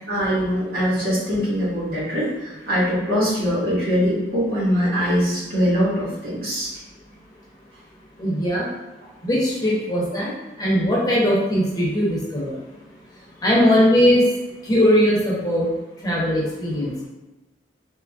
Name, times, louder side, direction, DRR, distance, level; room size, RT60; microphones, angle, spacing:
voice 1, 0.1-6.7, equal, 55° right, -8 dB, 1.5 m, -22 dB
voice 2, 8.2-8.6 9.2-10.3 10.6-12.5 13.4-14.2 14.7-15.7 16.0-16.9, equal, 20° left, -6 dB, 0.8 m, -19 dB
3.6 x 2.9 x 2.4 m, 1.0 s
head